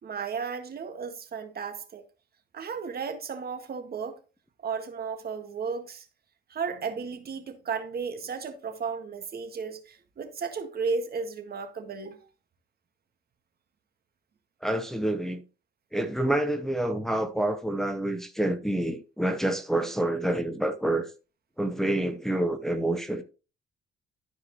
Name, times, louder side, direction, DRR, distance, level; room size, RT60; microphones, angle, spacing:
voice 1, 0.0-2.1 2.5-4.2 4.6-6.1 6.5-12.2, right 5 dB, 50° right, 1.7 m, -34 dB
voice 2, 14.6-15.4 15.9-21.1 21.6-23.2, right 1 dB, ahead, 0.9 m, -27 dB
12.5 x 4.8 x 3.1 m
cardioid pair, 90°, 20 cm